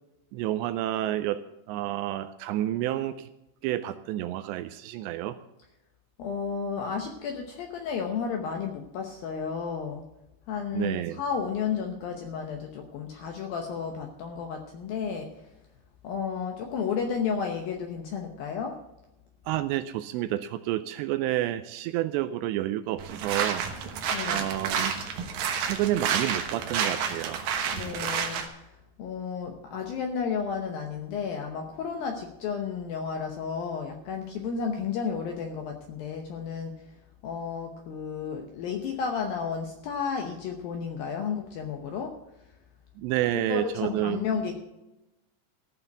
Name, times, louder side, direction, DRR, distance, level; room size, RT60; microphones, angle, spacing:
voice 1, 0.3-1.4 1.7-3.3 3.6-5.4 10.7-11.2 19.5-23.7 24.2-24.9 25.6-27.5 43.0-44.2, right 13 dB, 85° right, 11 dB, 2.6 m, -29 dB
voice 2, 6.2-10.0 10.5-15.5 16.0-18.8 24.1-24.5 27.7-28.7 29.0-36.7 37.2-42.1 43.5-44.6, left 6 dB, 75° left, 4 dB, 2.2 m, -32 dB
sound 1, 23.0-28.5, right 7 dB, 70° right, 2.3 m, -30 dB
15.0 x 5.6 x 8.0 m, 0.94 s
omnidirectional pair, 5.3 m